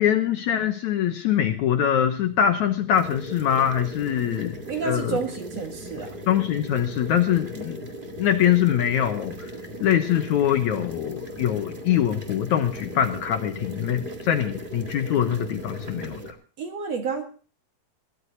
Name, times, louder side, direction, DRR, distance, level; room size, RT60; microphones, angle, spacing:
voice 1, 0.0-5.2 6.3-7.9 8.2-9.5 9.8-16.2, left 10 dB, 70° left, 6 dB, 2.0 m, -23 dB
sound 1, 2.9-16.3, right 1 dB, 30° right, 0.9 m, -38 dB
voice 2, 4.7-6.1 16.6-17.3, right 5 dB, 55° right, 4 dB, 2.4 m, -30 dB
21.0 x 14.5 x 2.8 m, 0.37 s
omnidirectional pair, 4.1 m